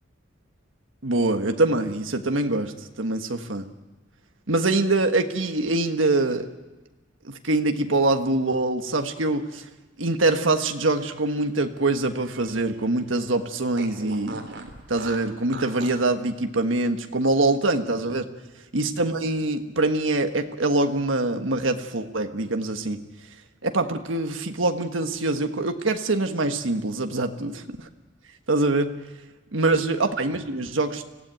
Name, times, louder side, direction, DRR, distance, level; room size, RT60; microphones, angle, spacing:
voice 1, 1.0-2.7 3.0-3.7 4.5-6.5 7.2-9.6 10.0-18.3 18.7-23.0 23.6-27.9 28.5-28.9 29.5-31.0, right 2 dB, 90° right, 6 dB, 1.5 m, -24 dB
Fart, 10.7-12.8 13.1-13.2 13.7-16.1, right 3 dB, 65° right, 3.5 m, -41 dB
24.5 x 16.5 x 9.1 m, 1.1 s
head